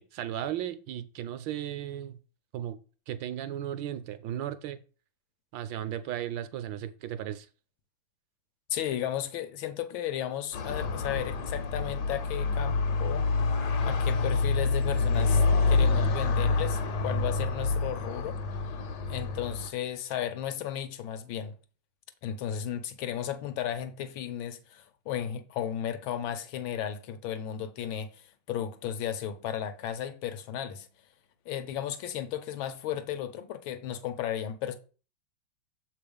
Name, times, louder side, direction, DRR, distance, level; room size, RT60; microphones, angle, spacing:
voice 1, 0.0-2.2 2.5-2.8 3.1-4.8 5.5-7.5, right 11 dB, 75° right, 1.2 m, -35 dB
voice 2, 8.7-13.3 13.8-15.4 15.7-18.4 19.1-21.5 22.2-30.9 31.5-34.8, left 10 dB, 80° left, 1.5 m, -34 dB
sound 1, 10.5-19.7, left 4 dB, 65° left, 1.4 m, -27 dB
6.9 x 3.5 x 5.2 m
omnidirectional pair, 2.2 m